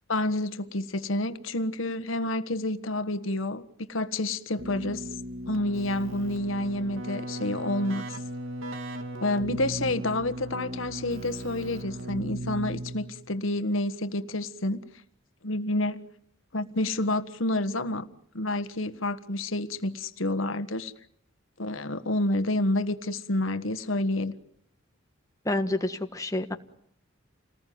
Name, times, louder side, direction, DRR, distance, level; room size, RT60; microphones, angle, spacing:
voice 1, 0.1-5.1 5.5-8.0 9.2-14.8 15.4-16.1 16.5-18.1 18.3-20.9 21.6-24.3, left 1 dB, 90° left, 1.5 m, -29 dB
Keyboard (musical), 4.6-13.3, right 1 dB, 90° right, 2.4 m, -37 dB
voice 2, 25.4-26.5, left 2 dB, 15° left, 1.5 m, -28 dB
29.0 x 19.5 x 9.4 m
head